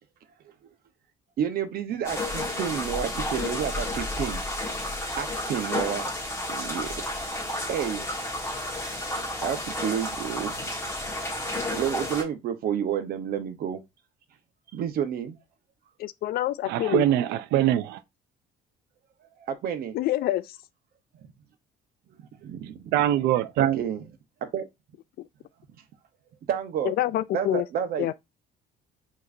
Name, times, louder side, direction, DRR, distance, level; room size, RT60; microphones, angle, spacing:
voice 1, 1.4-4.4 5.2-6.1 6.5-7.0 7.7-8.9 9.4-10.7 11.7-13.8 14.7-15.4 19.5-20.0 22.1-22.9 23.6-24.0 24.4-24.7 26.5-26.9 27.3-28.1, right 8 dB, 65° right, 0.9 m, -30 dB
sound 1, 2.0-12.2, left 1 dB, 15° left, 1.4 m, -31 dB
voice 2, 16.0-17.0 19.9-20.6 25.2-25.3 26.8-27.7 28.0-28.1, left 14 dB, 65° left, 0.4 m, -27 dB
voice 3, 16.7-18.0 22.9-23.8, right 12 dB, 85° right, 0.4 m, -23 dB
4.9 x 3.0 x 2.6 m
cardioid pair, 110°, 17 cm